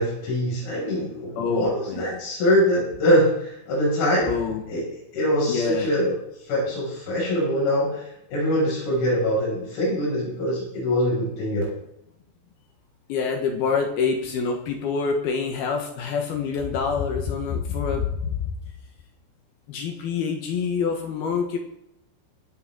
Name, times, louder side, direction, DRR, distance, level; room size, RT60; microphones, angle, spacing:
voice 1, 0.0-4.4 4.7-4.8 5.1-6.2 6.5-11.6, equal, 90° left, -5 dB, 9.4 m, -23 dB
voice 2, 1.4-2.2 4.3-4.8 5.5-5.9 13.1-18.3 19.7-21.6, left 5 dB, 65° left, 3 dB, 2.7 m, -26 dB
23.5 x 9.2 x 3.9 m, 0.81 s
omnidirectional pair, 5.9 m